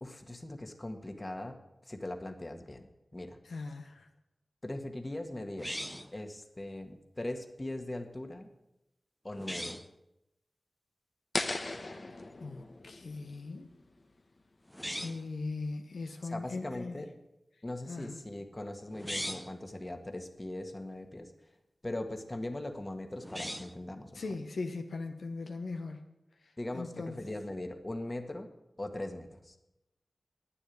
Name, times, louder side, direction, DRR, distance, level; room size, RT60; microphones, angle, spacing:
voice 1, 0.0-1.5 1.8-3.4 4.6-5.7 6.1-8.5 9.2-9.8 16.3-17.1 17.6-21.3 21.8-24.2 26.6-28.5 28.8-29.5, left 1 dB, 30° left, 6 dB, 1.6 m, -40 dB
voice 2, 3.5-4.1 12.4-13.7 15.0-17.0 17.9-18.1 24.1-26.1 26.7-27.1, left 3 dB, 90° left, 5 dB, 1.0 m, -39 dB
sound 1, 5.6-6.2 9.3-9.9 14.7-15.3 18.9-19.6 23.2-23.8, equal, 5° left, 0.7 m, -39 dB
sound 2, 11.3-14.4, left 2 dB, 50° left, 1.2 m, -38 dB
10.0 x 9.5 x 8.6 m, 0.92 s
wide cardioid pair, 55°, 0 cm